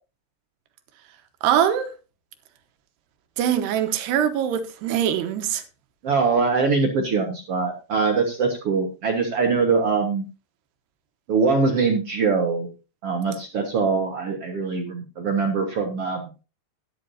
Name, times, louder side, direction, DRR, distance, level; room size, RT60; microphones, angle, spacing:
voice 1, 1.4-1.9 3.4-5.6, right 10 dB, 80° right, 3.2 m, -22 dB
voice 2, 6.0-10.2 11.3-12.7 13.0-16.3, right 4 dB, 65° right, 1.5 m, -23 dB
12.5 x 11.0 x 2.7 m
omnidirectional pair, 4.7 m